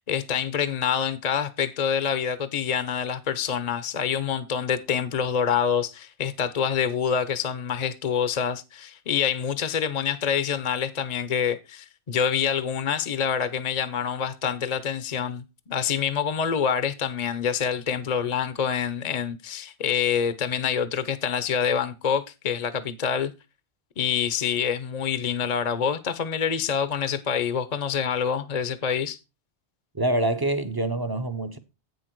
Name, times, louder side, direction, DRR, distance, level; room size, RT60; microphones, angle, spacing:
voice 1, 0.1-23.3 24.0-29.2, left 7 dB, 40° left, 0.7 m, -26 dB
voice 2, 29.9-31.6, right 1 dB, 25° right, 0.6 m, -25 dB
8.5 x 6.5 x 4.5 m
omnidirectional pair, 1.2 m